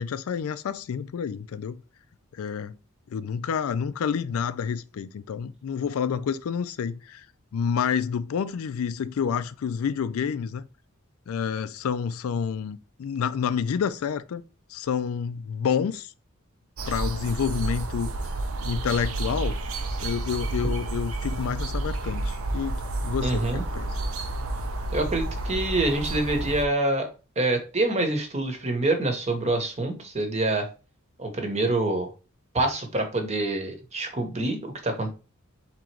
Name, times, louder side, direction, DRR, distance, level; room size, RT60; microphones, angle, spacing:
voice 1, 0.0-1.8 2.3-2.8 3.1-7.3 7.5-10.6 11.3-14.4 14.7-16.1 16.9-18.1 18.6-19.6 20.0-23.9, left 7 dB, 75° left, 0.4 m, -29 dB
sound 1, 16.8-26.6, right 2 dB, 75° right, 0.6 m, -30 dB
voice 2, 23.2-23.6 24.9-27.1 27.4-30.7 31.2-32.1 32.5-35.1, right 2 dB, 30° right, 0.9 m, -26 dB
3.7 x 2.9 x 4.5 m
head